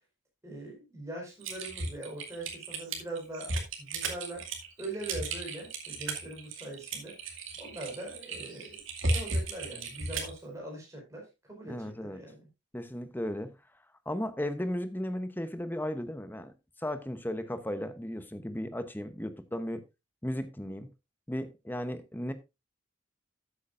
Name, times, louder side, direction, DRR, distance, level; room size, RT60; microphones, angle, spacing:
voice 1, 0.4-4.5 4.8-7.2 7.6-12.5, right 2 dB, 15° right, 4.9 m, -42 dB
Typing, 1.4-10.4, right 2 dB, 80° right, 2.3 m, -35 dB
voice 2, 11.7-12.2 12.7-13.5 14.1-16.5 16.8-19.8 20.2-20.9 21.3-22.3, left 1 dB, 10° left, 0.9 m, -35 dB
13.0 x 8.5 x 2.6 m
head